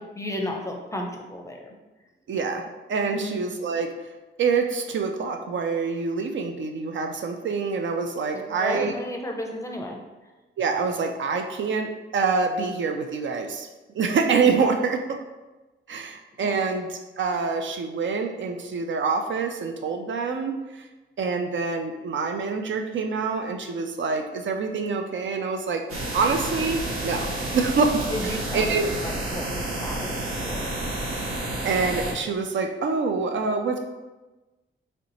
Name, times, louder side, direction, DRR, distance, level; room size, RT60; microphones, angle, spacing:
voice 1, 0.0-1.7 3.1-3.3 8.3-10.3 14.6-14.7 16.4-16.6 28.1-30.8, left 1 dB, 15° left, 1 dB, 0.6 m, -34 dB
voice 2, 2.3-3.9 4.4-8.9 10.6-13.7 13.9-15.0 15.9-20.9 21.2-25.8 26.1-28.9 31.6-33.8, right 4 dB, 65° right, 4 dB, 0.4 m, -26 dB
sound 1, 25.9-32.1, right 1 dB, 85° right, 0.9 m, -30 dB
3.2 x 2.9 x 4.0 m, 1.1 s
wide cardioid pair, 105°, 21 cm